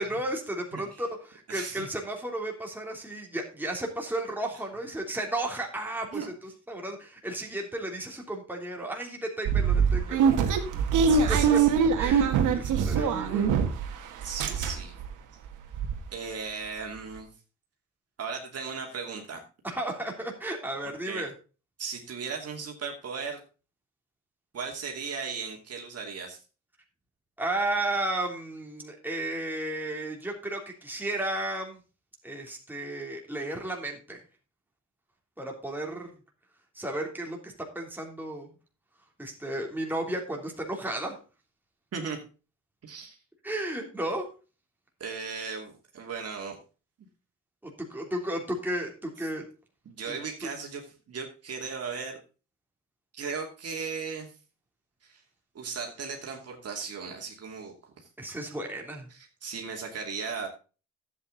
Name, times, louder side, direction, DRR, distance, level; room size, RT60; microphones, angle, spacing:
voice 1, 0.0-6.3 6.7-10.5 11.3-11.6 11.9-13.5 19.6-21.3 27.4-31.8 32.2-34.2 35.4-36.1 36.7-38.5 39.2-41.1 43.4-44.2 47.9-49.4 50.1-50.2 50.4-50.5 58.2-59.1, right 1 dB, 5° right, 0 dB, 3.1 m, -33 dB
voice 2, 1.5-1.9 6.1-6.3 10.7-11.7 12.5-12.6 14.2-15.0 16.1-17.3 18.2-19.4 21.1-21.2 21.8-23.4 24.5-26.4 41.9-42.2 42.8-43.2 45.0-46.6 49.8-50.8 51.1-52.2 53.1-54.3 55.0-55.2 55.5-58.1 59.1-60.5, right 5 dB, 55° right, 1 dB, 2.6 m, -37 dB
sound 1, 9.4-13.9 14.2-15.1 15.4-15.5 15.7-16.0, right 6 dB, 90° right, 1.6 m, -23 dB
11.5 x 8.5 x 3.9 m, 0.34 s
cardioid pair, 90°, 30 cm